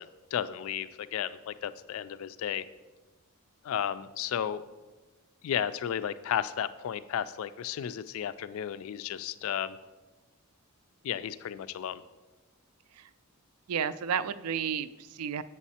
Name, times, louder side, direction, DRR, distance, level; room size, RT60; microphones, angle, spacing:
voice 1, 0.0-2.6 3.6-4.6 5.4-9.8 11.0-12.0, left 9 dB, 70° left, 14 dB, 0.3 m, -33 dB
voice 2, 13.7-15.4, right 7 dB, 85° right, 15 dB, 0.4 m, -32 dB
7.2 x 7.2 x 4.2 m, 1.2 s
head